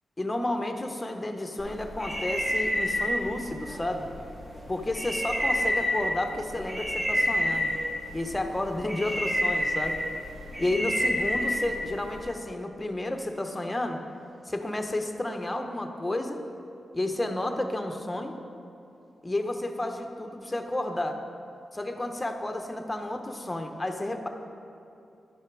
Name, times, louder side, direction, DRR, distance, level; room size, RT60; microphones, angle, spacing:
voice 1, 0.2-4.1 4.7-7.7 8.1-10.0 10.6-14.0 14.4-16.4 16.9-18.4 19.2-21.2 21.7-24.3, left 1 dB, 20° left, 5 dB, 0.9 m, -31 dB
sound 1, 1.6-12.2, equal, 25° right, 2.1 m, -30 dB
11.0 x 5.6 x 4.7 m, 2.6 s
cardioid pair, 50°, 0 cm